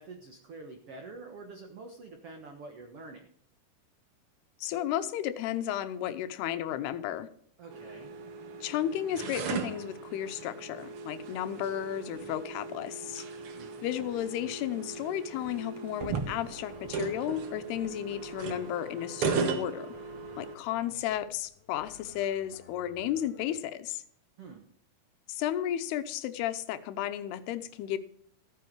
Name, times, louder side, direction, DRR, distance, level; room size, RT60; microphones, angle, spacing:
voice 1, 0.0-3.3 7.6-8.1 13.5-13.9 24.4-24.7, right 3 dB, 55° right, 4 dB, 1.6 m, -47 dB
voice 2, 4.6-7.3 8.6-13.3 13.8-19.9 20.4-24.0 25.3-28.0, left 11 dB, 90° left, 11 dB, 2.9 m, -33 dB
sound 1, 7.7-20.6, right 5 dB, 75° right, 1.2 m, -37 dB
sound 2, 16.3-23.6, left 7 dB, 75° left, 3.2 m, -55 dB
14.5 x 9.4 x 4.7 m, 0.64 s
omnidirectional pair, 4.5 m